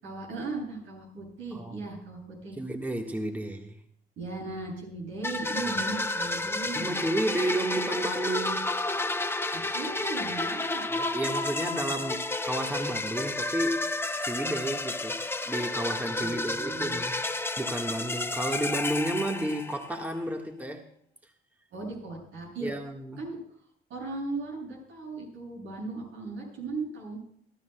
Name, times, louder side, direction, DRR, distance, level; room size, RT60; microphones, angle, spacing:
voice 1, 0.0-2.6 4.2-6.9 9.5-10.9 16.2-17.0 21.7-22.7 23.2-23.4 23.9-27.2, right 3 dB, 80° right, -2 dB, 7.8 m, -37 dB
voice 2, 2.6-3.8 6.7-8.7 10.9-13.9 14.2-17.2 17.6-20.8 22.6-23.2, right 1 dB, 10° right, 2 dB, 1.6 m, -32 dB
sound 1, 5.2-20.0, left 2 dB, 10° left, 0.7 m, -31 dB
27.5 x 13.0 x 2.3 m, 0.63 s
cardioid pair, 90°, 20 cm